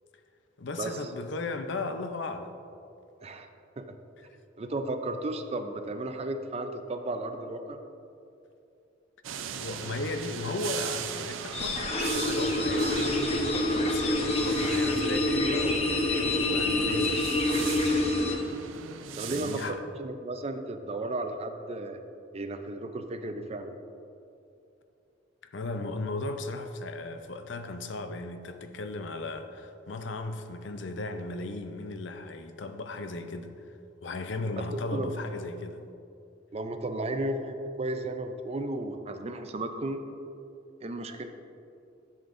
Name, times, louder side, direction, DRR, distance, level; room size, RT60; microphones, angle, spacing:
voice 1, 0.6-2.5 9.6-17.2 19.1-19.8 25.5-33.7 34.0-35.8, left 2 dB, 65° left, 8 dB, 0.5 m, -36 dB
voice 2, 4.6-7.8 18.0-18.3 19.2-22.0 22.3-23.8 34.7-35.1 36.5-40.0 40.8-41.3, right 2 dB, 30° right, 7 dB, 0.5 m, -34 dB
sound 1, 9.2-19.7, right 7 dB, 90° right, 0.5 m, -39 dB
sound 2, 11.5-18.4, left 1 dB, 30° left, 0.8 m, -27 dB
11.0 x 7.2 x 2.6 m, 2.6 s
head